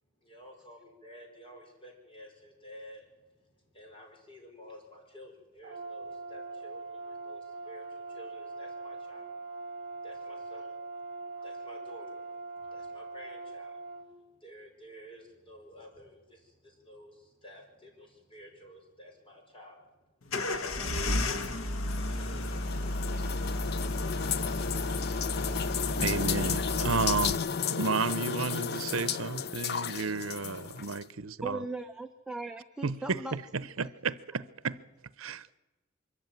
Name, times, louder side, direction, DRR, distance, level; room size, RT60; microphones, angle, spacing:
voice 1, 0.2-3.1 3.7-9.4 10.0-10.8 11.4-12.2 12.6-20.1 20.4-20.8 22.0-22.7, equal, 25° left, 5.3 m, -52 dB
Brass instrument, 5.6-14.1, right 3 dB, 45° right, 2.3 m, -42 dB
sound 1, 20.3-27.3, left 1 dB, 80° left, 1.5 m, -33 dB
sound 2, 21.4-31.0, left 7 dB, 50° left, 0.6 m, -33 dB
voice 2, 26.0-31.6 32.8-34.8 35.2-35.6, right 4 dB, 80° right, 0.8 m, -32 dB
voice 3, 31.4-33.4, right 2 dB, 5° right, 0.8 m, -38 dB
23.5 x 14.0 x 9.2 m
head